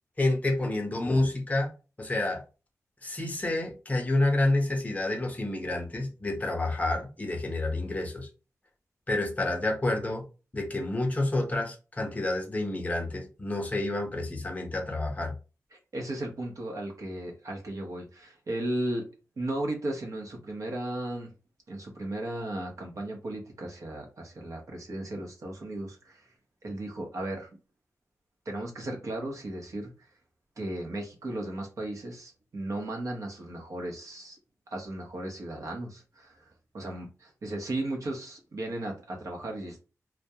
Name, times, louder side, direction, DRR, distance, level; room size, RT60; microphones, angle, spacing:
voice 1, 0.2-1.7 2.0-2.4 3.0-8.3 9.1-10.2 10.5-15.3, left 2 dB, 25° left, 0.7 m, -29 dB
voice 2, 15.7-19.0 19.4-21.3 21.7-26.3 26.6-27.5 28.5-30.1 30.6-34.4 34.7-39.8, right 1 dB, 65° right, 0.8 m, -35 dB
2.2 x 2.1 x 2.7 m
wide cardioid pair, 110°, 6 cm